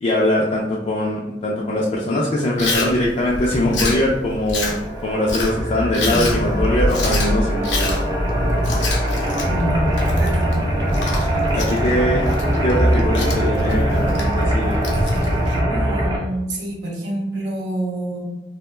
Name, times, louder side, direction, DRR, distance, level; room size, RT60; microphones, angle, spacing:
voice 1, 0.0-8.0 11.5-12.2 12.6-14.8, left 1 dB, 35° left, -4 dB, 0.3 m, -21 dB
Chewing mastication, 2.6-15.6, left 2 dB, 90° left, 0.6 m, -28 dB
sound 1, 4.7-16.2, equal, 25° right, 0.5 m, -21 dB
voice 2, 9.4-10.4 15.7-18.2, right 1 dB, 80° right, -3 dB, 0.7 m, -27 dB
2.3 x 2.1 x 3.0 m, 0.94 s
head